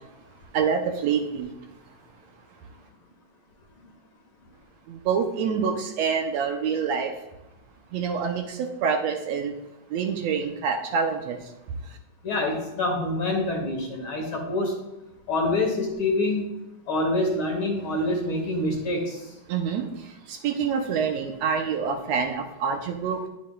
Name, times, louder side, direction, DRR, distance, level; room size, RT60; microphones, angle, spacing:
voice 1, 0.5-1.5 4.9-7.1 7.9-9.5 9.9-11.4 19.5-19.9 20.3-23.3, right 6 dB, 75° right, 4 dB, 1.8 m, -26 dB
voice 2, 12.2-14.8 15.3-16.5 16.9-19.2, left 2 dB, 55° left, 1 dB, 1.6 m, -26 dB
10.0 x 7.3 x 2.3 m, 0.98 s
omnidirectional pair, 3.3 m